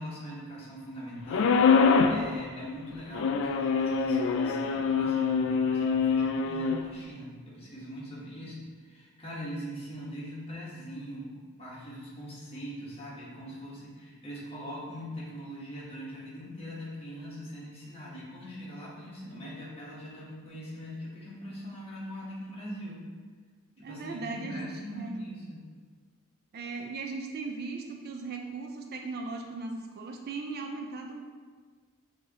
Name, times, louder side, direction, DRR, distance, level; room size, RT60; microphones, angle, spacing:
voice 1, 0.0-11.3 11.6-23.0 23.8-25.6, equal, 30° left, -6 dB, 1.2 m, -41 dB
sound 1, 1.3-2.2 3.1-6.8, left 5 dB, 60° left, 0.3 m, -24 dB
voice 2, 23.8-25.3 26.5-31.2, right 3 dB, 45° right, 3 dB, 0.4 m, -38 dB
6.5 x 2.8 x 2.8 m, 1.5 s
head